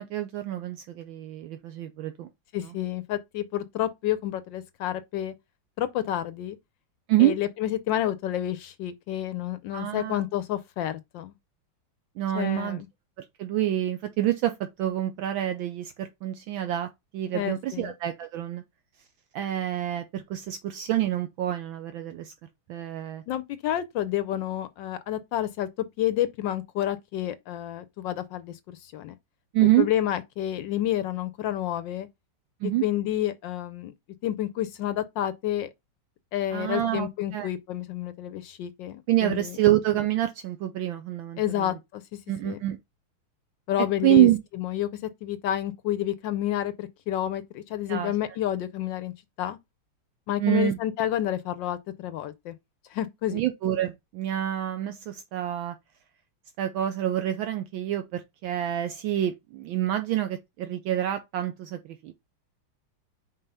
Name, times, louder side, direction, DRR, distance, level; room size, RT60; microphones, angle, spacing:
voice 1, 0.0-2.3 2.6-2.7 7.1-7.4 9.7-10.2 12.2-12.8 13.4-14.5 14.8-18.6 19.3-22.3 22.7-23.2 29.5-29.9 32.6-32.8 36.5-37.5 39.1-41.7 42.3-42.8 44.0-44.4 47.9-48.1 50.4-50.8 53.3-55.7 56.6-62.1, right 13 dB, 75° right, 1.3 m, -27 dB
voice 2, 2.5-5.3 5.8-6.6 7.2-11.3 12.3-12.9 17.3-17.9 23.3-25.7 26.0-29.1 29.8-32.1 32.8-33.9 34.2-35.7 36.3-39.6 41.4-42.0 42.4-42.6 43.7-44.3 44.6-44.9 45.2-49.1 49.4-49.6 50.3-52.5 52.9-53.4, left 12 dB, 75° left, 1.1 m, -29 dB
5.3 x 3.9 x 5.5 m
omnidirectional pair, 2.3 m